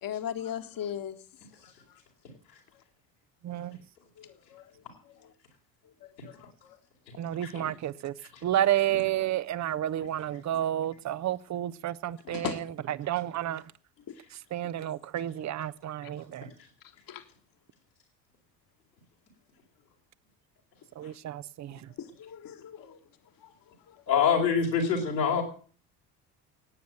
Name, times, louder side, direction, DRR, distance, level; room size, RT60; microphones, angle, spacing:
voice 1, 0.0-1.2 1.6-1.7 4.2-4.7 5.0-5.3 6.0-6.8 12.3-12.6 13.5-13.6 17.1-17.2 21.0-21.1 22.0-23.0 23.4-24.0, left 9 dB, 45° left, 1.8 m, -39 dB
voice 2, 3.4-3.8 7.2-8.1 8.4-12.5 13.0-13.6 14.5-16.5 21.0-21.8, right 12 dB, 35° right, 0.8 m, -30 dB
voice 3, 24.1-25.4, left 6 dB, 85° left, 5.0 m, -25 dB
17.0 x 9.5 x 7.8 m
hypercardioid pair, 60°, 49 cm